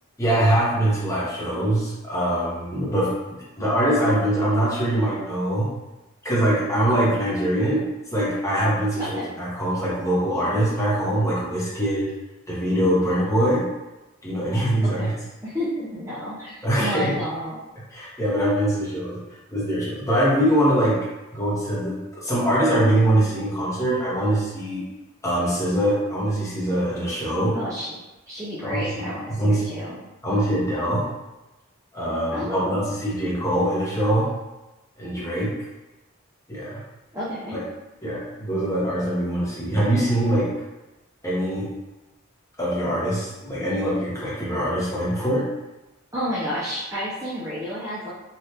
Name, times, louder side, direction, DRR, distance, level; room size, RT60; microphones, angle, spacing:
voice 1, 0.2-5.7 6.2-7.8 8.1-12.1 12.5-13.7 14.2-15.1 16.6-17.1 17.9-19.2 19.5-21.0 21.3-24.8 25.2-27.6 28.6-29.7 30.2-31.1 31.9-34.3 35.0-35.6 36.5-36.8 38.0-40.5 41.2-41.7 42.6-45.5, right 1 dB, 15° left, -7 dB, 0.9 m, -23 dB
voice 2, 9.0-9.3 14.8-15.2 15.4-17.6 27.5-28.0 28.3-30.0 32.3-32.9 37.1-37.6 46.1-48.1, equal, 15° right, -9 dB, 0.5 m, -30 dB
3.3 x 2.4 x 2.8 m, 1.1 s
head